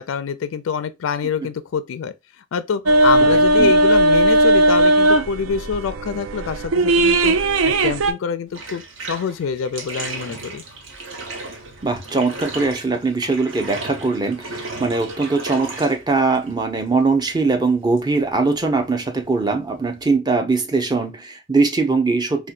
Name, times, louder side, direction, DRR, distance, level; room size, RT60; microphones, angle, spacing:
voice 1, 0.0-7.4 7.6-8.8 9.1-10.6, left 6 dB, 80° left, 0.4 m, -26 dB
sound 1, 2.9-8.1, right 1 dB, 85° right, 0.4 m, -16 dB
Bathtub (filling or washing), 8.5-20.1, right 3 dB, 65° right, 0.9 m, -35 dB
voice 2, 11.8-22.5, right 3 dB, 20° right, 0.6 m, -21 dB
4.2 x 2.2 x 2.3 m
head